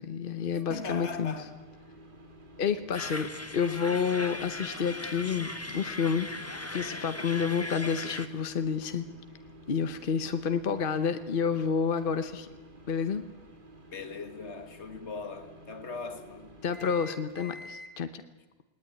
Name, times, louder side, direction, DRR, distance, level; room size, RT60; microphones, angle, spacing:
voice 1, 0.0-1.3 2.6-6.3 6.7-9.1 9.7-12.5 12.9-13.2 16.6-18.1, left 6 dB, 55° left, 1.1 m, -29 dB
voice 2, 0.5-1.6 2.9-3.4 13.9-16.6, left 4 dB, 75° left, 2.0 m, -40 dB
sound 1, 0.7-17.9, equal, 45° right, 2.7 m, -50 dB
sound 2, 2.9-8.3, left 1 dB, 15° left, 1.1 m, -38 dB
19.5 x 19.0 x 10.0 m
omnidirectional pair, 1.2 m